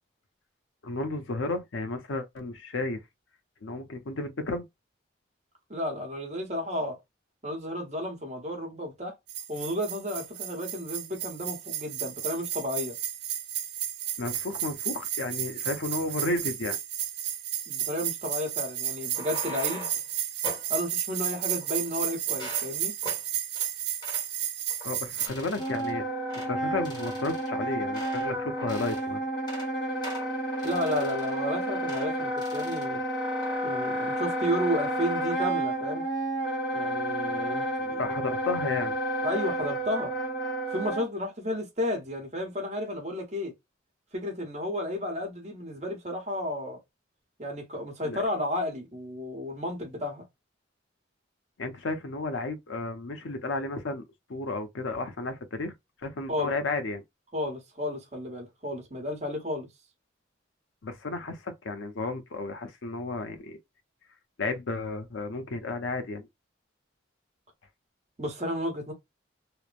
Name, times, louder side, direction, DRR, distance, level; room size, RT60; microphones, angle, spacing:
voice 1, 0.8-3.0 3.6-4.6 14.2-16.8 24.8-26.0 26.3-29.2 38.0-38.9 48.0-48.2 51.6-54.0 54.3-55.7 56.0-57.0 60.8-63.6 64.4-66.3, left 2 dB, 75° left, 0.6 m, -32 dB
voice 2, 5.7-7.0 7.4-9.1 9.5-12.9 17.7-19.9 20.7-22.9 30.6-33.0 33.6-36.0 36.7-38.3 39.2-40.1 40.7-43.5 44.1-46.8 47.4-50.2 56.3-56.5 57.3-59.7 68.2-68.9, left 1 dB, 35° right, 1.0 m, -32 dB
sound 1, 9.3-25.3, right 10 dB, 55° right, 0.6 m, -33 dB
creaky door, 18.9-20.1 20.4-20.7 21.3-22.0 22.3-22.7 23.0-23.2 23.6-23.7 24.0-24.3 24.7-24.9 25.2-25.9 26.3-26.5 26.8-28.3 28.6-29.1 29.4-29.7 30.0-31.4 31.9-32.1 32.4-32.9 33.2-33.6, equal, 20° left, 1.0 m, -42 dB
Wind instrument woodwind instrument, 25.6-41.1, right 1 dB, 55° left, 1.0 m, -31 dB
3.0 x 2.0 x 2.4 m
head